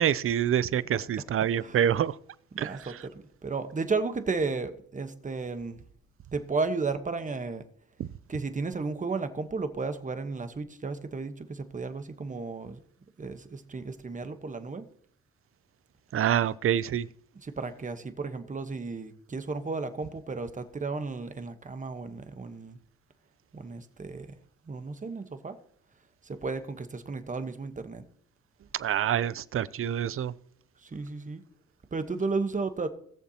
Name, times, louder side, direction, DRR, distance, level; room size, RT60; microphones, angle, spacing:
voice 1, 0.0-2.2 2.6-2.9 8.0-8.1 16.1-17.1 28.7-30.3, right 10 dB, 45° right, 0.6 m, -26 dB
voice 2, 2.5-5.8 6.3-7.6 8.3-12.8 13.2-14.8 17.4-22.8 23.5-24.3 24.7-25.6 26.2-28.0 30.8-31.4 31.9-32.9, right 4 dB, 25° right, 1.2 m, -33 dB
20.0 x 7.0 x 2.9 m
cardioid pair, 90°, 30 cm